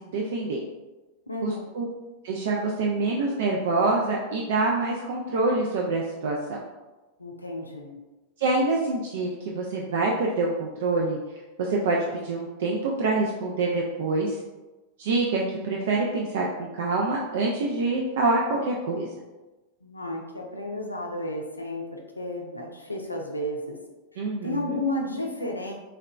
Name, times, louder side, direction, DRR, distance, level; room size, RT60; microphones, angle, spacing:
voice 1, 0.1-0.6 1.4-1.9 2.2-6.6 8.4-11.2 11.6-12.0 12.2-14.4 15.0-19.1 24.2-24.8, right 3 dB, 55° right, -2 dB, 0.3 m, -26 dB
voice 2, 1.3-1.7 7.2-8.0 19.8-23.8 24.4-25.7, left 1 dB, 85° left, 1 dB, 0.4 m, -32 dB
3.1 x 2.8 x 2.3 m, 1.1 s
figure-of-eight pair, 90°, 0 cm